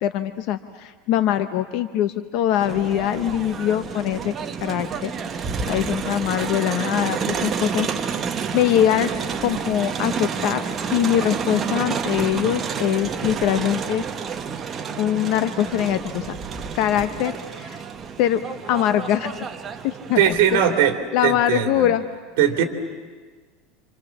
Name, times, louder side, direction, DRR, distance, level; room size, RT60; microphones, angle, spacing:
voice 1, 0.0-4.3 4.6-5.1 5.7-8.2 8.5-9.1 9.4-10.6 10.9-14.0 15.0-16.4 16.7-17.8 18.2-18.4 18.7-19.5 19.8-20.6 21.1-22.0, left 11 dB, 45° left, 10 dB, 0.8 m, -23 dB
Crowd, 2.6-20.9, right 6 dB, 20° right, 0.9 m, -29 dB
voice 2, 20.2-20.9 21.2-21.9 22.4-22.6, right 10 dB, 60° right, 5 dB, 2.9 m, -19 dB
28.5 x 27.0 x 7.2 m, 1.5 s
supercardioid pair, 180°, 0 cm